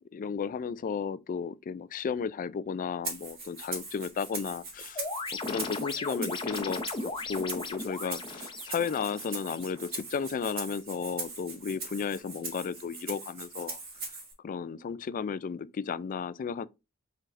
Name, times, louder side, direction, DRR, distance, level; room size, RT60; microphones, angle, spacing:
voice 1, 0.1-5.0 5.4-13.8 14.4-16.7, left 6 dB, 40° left, 0.3 m, -34 dB
Rattle (instrument), 3.0-14.3, right 3 dB, 45° right, 1.8 m, -41 dB
sound 1, 4.9-9.9, left 3 dB, 25° left, 0.7 m, -37 dB
4.6 x 4.5 x 2.5 m
head